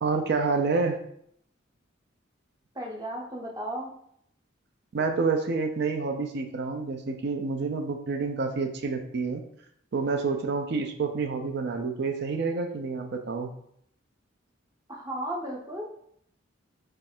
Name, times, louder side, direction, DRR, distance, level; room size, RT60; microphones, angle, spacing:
voice 1, 0.0-1.0 4.9-9.4 9.9-13.5, right 4 dB, 60° right, 5 dB, 0.4 m, -28 dB
voice 2, 2.7-3.9 14.9-15.8, right 1 dB, 20° right, -1 dB, 0.7 m, -34 dB
3.1 x 2.4 x 4.3 m, 0.69 s
head